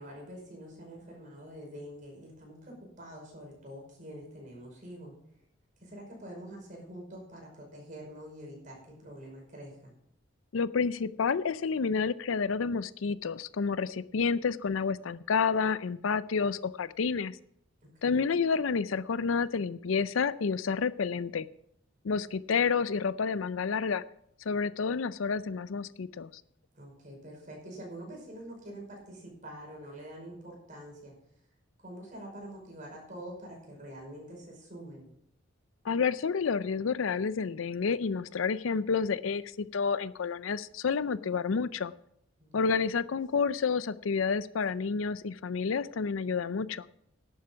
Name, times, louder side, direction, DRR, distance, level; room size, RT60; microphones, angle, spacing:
voice 1, 0.0-5.1 5.8-9.9 17.8-18.4 26.8-31.1 31.8-35.1 42.4-42.7, right 1 dB, 40° right, 0 dB, 5.4 m, -46 dB
voice 2, 10.5-17.4 18.0-21.5 22.0-24.0 24.5-26.3 35.9-41.9 42.5-46.9, left 5 dB, 85° left, 16 dB, 0.5 m, -29 dB
11.0 x 9.1 x 5.8 m, 0.72 s
head